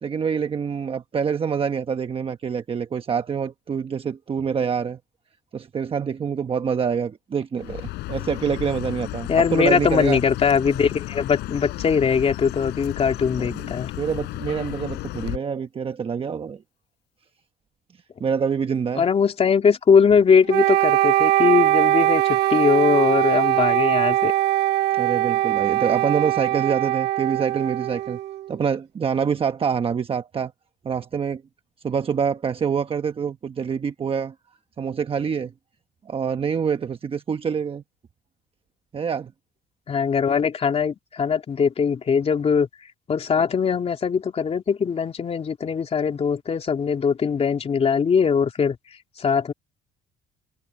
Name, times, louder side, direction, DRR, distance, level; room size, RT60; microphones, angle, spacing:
voice 1, 0.0-5.0 5.5-10.2 13.4-16.6 18.2-19.0 25.0-28.2 28.5-30.5 30.8-31.4 31.8-34.3 34.8-35.5 36.0-37.8 38.9-39.3, right 6 dB, 35° right, 1.1 m, -26 dB
Chirp tweet, 7.6-15.4, left 18 dB, 90° left, 4.5 m, -33 dB
voice 2, 9.3-13.9 19.0-24.3 39.9-42.7 43.1-48.8 49.2-49.5, left 6 dB, 35° left, 3.0 m, -21 dB
Wind instrument woodwind instrument, 20.5-28.5, right 14 dB, 75° right, 0.9 m, -21 dB
cardioid pair, 110°, 17 cm